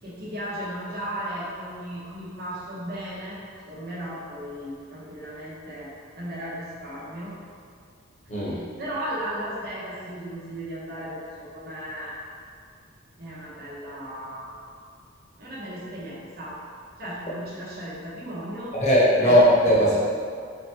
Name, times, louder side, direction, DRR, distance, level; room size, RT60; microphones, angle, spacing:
voice 1, 0.0-3.4 3.6-7.3 8.3-12.2 13.2-14.7 15.4-16.6 17.0-18.7 19.2-19.5 19.7-19.8, equal, 50° right, -7 dB, 1.1 m, -36 dB
voice 2, 8.3-8.6 18.7-20.0, equal, 35° left, -7 dB, 1.0 m, -18 dB
3.9 x 3.4 x 2.9 m, 2.2 s
head